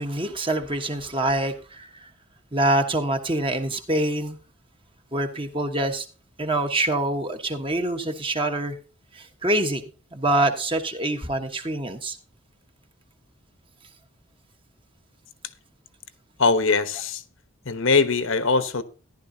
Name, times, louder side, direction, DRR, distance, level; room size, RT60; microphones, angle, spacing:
voice 1, 0.0-2.1 2.5-4.4 5.1-6.0 6.4-8.8 9.1-9.8 10.1-12.2, right 1 dB, 25° right, 1.3 m, -25 dB
voice 2, 16.4-17.2 17.6-18.8, left 4 dB, 65° left, 1.1 m, -21 dB
14.5 x 11.0 x 2.8 m
head